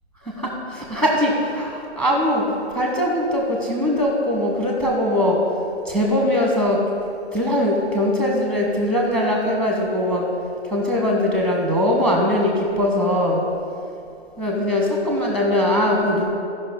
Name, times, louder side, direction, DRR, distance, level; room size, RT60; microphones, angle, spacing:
voice 1, 0.4-5.4 5.8-6.8 7.3-10.3 10.7-13.4 14.4-16.3, left 1 dB, 5° left, -1 dB, 0.9 m, -21 dB
14.0 x 5.5 x 5.2 m, 2.6 s
hypercardioid pair, 145°, 34 cm